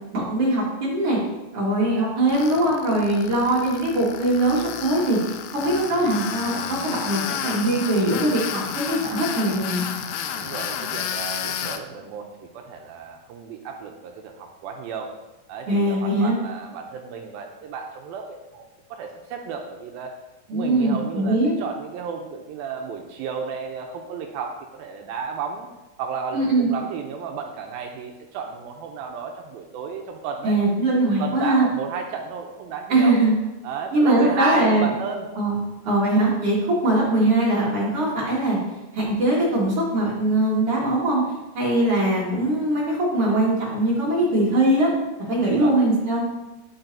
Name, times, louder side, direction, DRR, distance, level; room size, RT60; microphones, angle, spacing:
voice 1, 0.1-1.2 1.5-5.2 5.5-9.9 15.7-16.4 20.5-21.5 26.3-26.7 30.4-31.7 32.9-33.3 33.9-34.9 35.4-38.6 38.9-41.2 41.5-44.9 45.3-46.2, right 1 dB, 50° right, -5 dB, 1.9 m, -21 dB
voice 2, 1.8-2.1 2.5-2.8 5.9-6.2 10.2-15.1 15.5-20.2 20.5-25.7 26.0-30.6 31.0-33.2 33.6-35.3 37.0-37.1 41.8-42.2 45.4-45.7, right 5 dB, 80° right, 3 dB, 2.2 m, -33 dB
Tools, 2.3-11.8, left 9 dB, 85° left, 2.5 m, -31 dB
8.8 x 8.8 x 2.7 m, 1.0 s
omnidirectional pair, 4.6 m